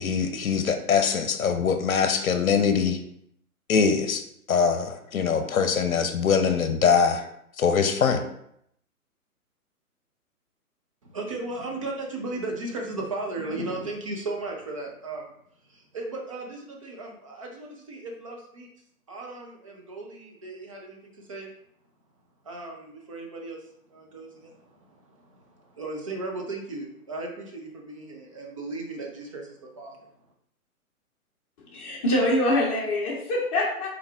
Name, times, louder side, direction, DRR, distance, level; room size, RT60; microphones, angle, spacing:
voice 1, 0.0-3.0 3.7-4.2 4.5-7.2 7.6-8.2, left 6 dB, 65° left, 7 dB, 0.8 m, -23 dB
voice 2, 11.0-15.3 15.7-18.7 19.1-21.5 22.4-23.6 23.9-30.1, right 2 dB, 25° right, 0 dB, 0.5 m, -36 dB
voice 3, 31.6-33.9, left 1 dB, 25° left, -6 dB, 0.9 m, -24 dB
5.3 x 4.0 x 2.3 m, 0.72 s
figure-of-eight pair, 130°, 45 cm